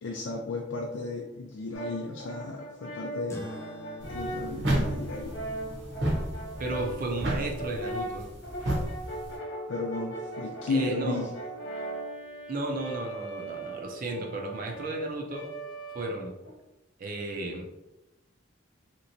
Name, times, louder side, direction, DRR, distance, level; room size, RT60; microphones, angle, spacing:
voice 1, 0.0-3.4 4.1-5.4 9.7-11.3, left 3 dB, 85° left, 0 dB, 0.4 m, -34 dB
Brass instrument, 1.7-16.5, right 1 dB, 70° left, 0.8 m, -39 dB
sound 1, 3.3-8.1, left 1 dB, 15° left, 0.5 m, -48 dB
sound 2, 4.0-9.4, right 1 dB, 65° right, 0.9 m, -32 dB
voice 2, 6.6-8.3 10.7-11.3 12.5-15.5 15.9-16.3 17.0-17.7, right 2 dB, 45° right, 1 dB, 0.5 m, -33 dB
3.2 x 3.0 x 2.7 m, 0.98 s
head